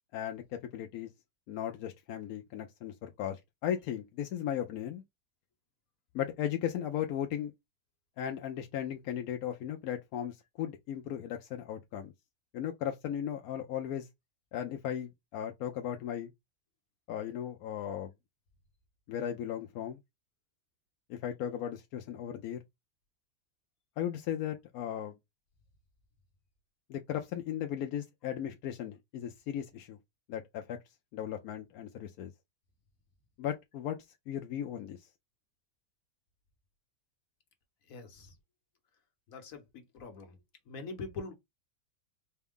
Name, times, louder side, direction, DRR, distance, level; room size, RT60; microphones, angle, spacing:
voice 1, 0.1-0.4 0.7-1.1 1.5-5.0 6.1-7.5 8.2-12.1 12.5-14.1 14.5-16.3 17.1-18.1 19.1-20.0 21.1-22.6 24.0-25.1 26.9-30.0 30.3-30.8 31.1-32.3 33.4-34.0 34.3-35.0, left 10 dB, 70° left, 0.9 m, -36 dB
voice 2, 37.9-38.3 39.3-40.3 40.7-41.3, left 3 dB, 55° left, 1.3 m, -43 dB
4.4 x 2.3 x 3.5 m
omnidirectional pair, 1.9 m